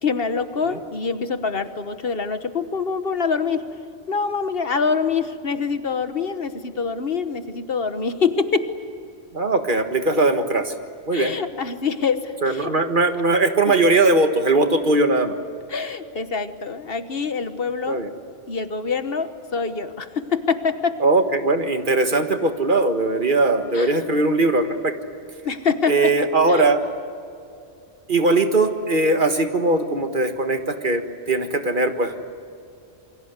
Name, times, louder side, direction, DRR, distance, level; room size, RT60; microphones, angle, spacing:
voice 1, 0.0-3.7 4.1-8.7 11.1-12.7 13.6-13.7 15.7-18.0 18.5-21.0 23.7-24.0 25.4-26.7, left 5 dB, 60° left, 10 dB, 1.4 m, -25 dB
voice 2, 9.3-10.7 11.1-11.3 12.4-15.4 17.9-18.1 21.0-24.9 25.9-26.8 28.1-32.2, right 2 dB, 50° right, 7 dB, 1.7 m, -20 dB
27.5 x 23.5 x 8.1 m, 2.4 s
omnidirectional pair, 1.1 m